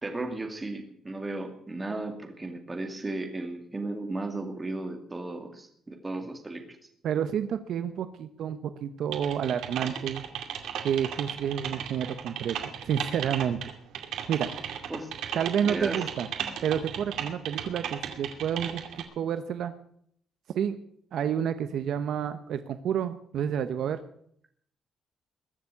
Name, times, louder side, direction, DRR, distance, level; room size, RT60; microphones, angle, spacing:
voice 1, 0.0-6.6 14.9-15.1 15.6-16.0, right 2 dB, 15° right, 4 dB, 2.3 m, -35 dB
voice 2, 7.0-10.2 10.8-12.6 12.9-13.6 14.3-14.5 15.3-16.3 16.6-18.8 19.2-19.7 20.5-20.8 21.1-24.0, right 8 dB, 60° right, 10 dB, 0.9 m, -29 dB
Typing, 9.1-19.0, right 9 dB, 85° right, 2.4 m, -35 dB
22.0 x 7.3 x 8.4 m, 0.66 s
cardioid pair, 175°, 0 cm